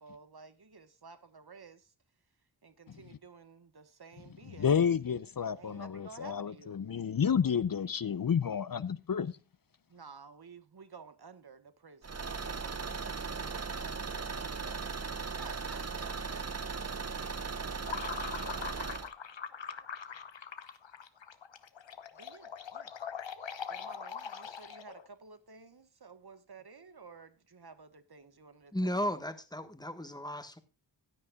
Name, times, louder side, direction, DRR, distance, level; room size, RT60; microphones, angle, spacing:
voice 1, 0.0-1.9 2.6-4.8 5.5-6.8 9.9-16.8 18.1-19.1 22.1-22.9 23.7-29.1, right 5 dB, 55° right, 1.3 m, -54 dB
voice 2, 4.6-9.4, left 7 dB, 50° left, 0.6 m, -30 dB
Car / Engine, 12.0-19.1, right 5 dB, 35° right, 0.8 m, -38 dB
sound 1, 17.8-25.1, left 7 dB, 75° left, 1.0 m, -42 dB
voice 3, 28.7-30.6, equal, 10° left, 1.3 m, -35 dB
15.5 x 9.6 x 2.3 m
wide cardioid pair, 55°, 45 cm